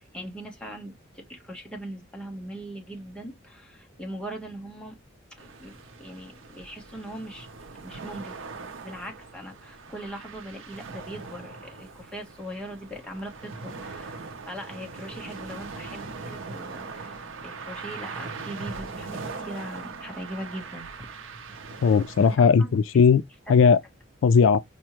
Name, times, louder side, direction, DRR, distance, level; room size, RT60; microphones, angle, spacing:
voice 1, 0.1-5.0 5.3-7.5 7.8-8.4 8.8-21.1 22.2-22.8 23.5-23.6, right 1 dB, 5° left, 0.9 m, -40 dB
sound 1, 5.4-22.4, right 4 dB, 75° right, 0.6 m, -40 dB
voice 2, 21.8-23.2 23.5-23.8 24.2-24.6, left 6 dB, 70° left, 0.3 m, -17 dB
5.1 x 2.1 x 2.9 m
head